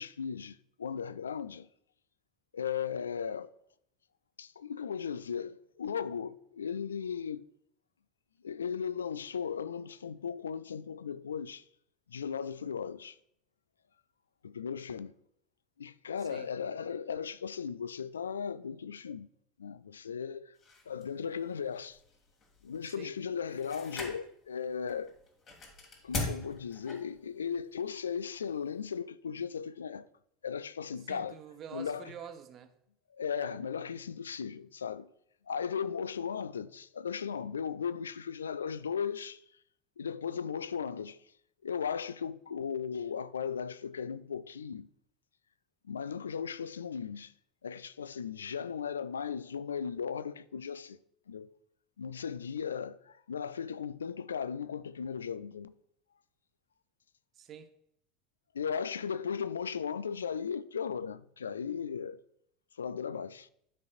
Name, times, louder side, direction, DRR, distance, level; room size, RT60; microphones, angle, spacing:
voice 1, 0.0-1.7 2.5-3.5 4.4-7.5 8.4-11.6 12.1-13.2 14.4-15.1 15.8-19.3 19.6-20.6 20.9-22.0 22.6-25.1 26.0-30.1 30.4-31.4 31.7-32.1 33.1-35.1 35.5-39.4 40.0-41.2 41.6-44.9 45.8-47.3 47.6-51.0 51.3-51.5 52.0-55.7 58.5-62.2 62.8-63.5, left 7 dB, 75° left, 0.3 m, -37 dB
sound 1, 20.6-29.0, left 3 dB, 40° left, 2.6 m, -43 dB
voice 2, 31.1-32.7 57.3-57.7, right 8 dB, 35° right, 1.0 m, -47 dB
12.5 x 5.3 x 2.6 m
figure-of-eight pair, 75°, 0 cm